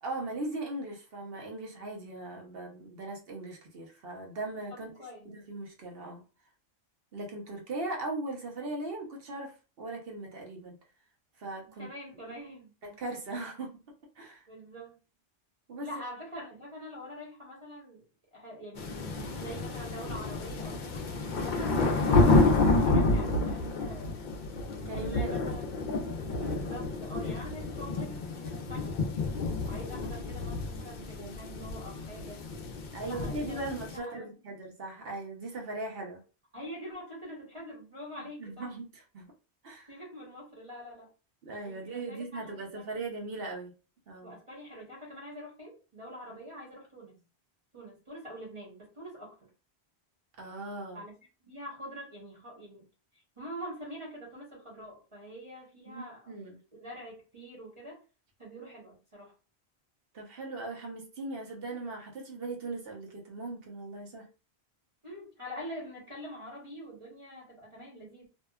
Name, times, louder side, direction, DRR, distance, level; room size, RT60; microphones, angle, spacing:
voice 1, 0.0-4.9 5.2-6.2 7.1-10.7 11.4-11.9 12.8-13.7 14.2-14.5 15.7-15.9 24.9-25.3 31.2-31.4 32.9-36.2 38.4-39.3 39.6-39.9 41.4-43.7 44.1-44.4 50.4-51.0 55.9-56.6 60.1-64.2, right 2 dB, 65° right, 1 dB, 1.0 m, -39 dB
voice 2, 4.7-5.2 11.6-12.7 14.5-15.0 15.8-18.0 18.3-24.3 24.9-25.7 26.3-29.0 29.7-32.4 33.0-34.4 36.5-38.7 39.9-41.1 41.6-43.0 44.2-47.2 47.7-49.4 50.9-51.1 51.4-52.9 53.1-56.3 56.8-58.0 58.4-59.3 65.0-68.3, equal, 30° right, -3 dB, 0.9 m, -45 dB
sound 1, 18.8-34.0, left 2 dB, 55° left, 0.6 m, -29 dB
2.7 x 2.2 x 2.3 m, 0.33 s
omnidirectional pair, 1.1 m